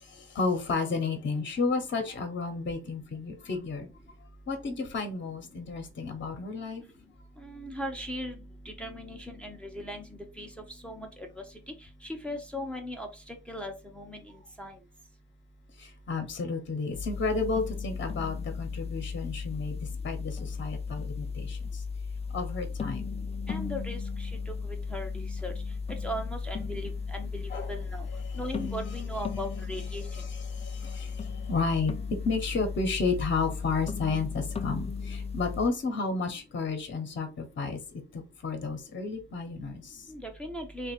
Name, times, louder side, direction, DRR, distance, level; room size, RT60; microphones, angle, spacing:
voice 1, 0.2-3.9 4.5-6.8 15.8-21.8 22.3-23.2 27.5-27.7 28.2-28.4 30.4-31.9 32.2-37.8 38.1-40.0, left 4 dB, 40° left, 6 dB, 1.0 m, -32 dB
voice 2, 7.4-8.3 8.8-10.0 10.4-10.5 10.8-11.1 12.0-14.2 14.6-14.7 23.5-24.3 24.6-25.5 26.0-28.1 28.4-30.0 40.1-40.9, equal, 5° left, 2 dB, 0.8 m, -38 dB
sound 1, 16.9-35.7, left 5 dB, 20° left, 0.4 m, -36 dB
2.9 x 2.5 x 4.3 m, 0.28 s
cardioid pair, 90°, 30 cm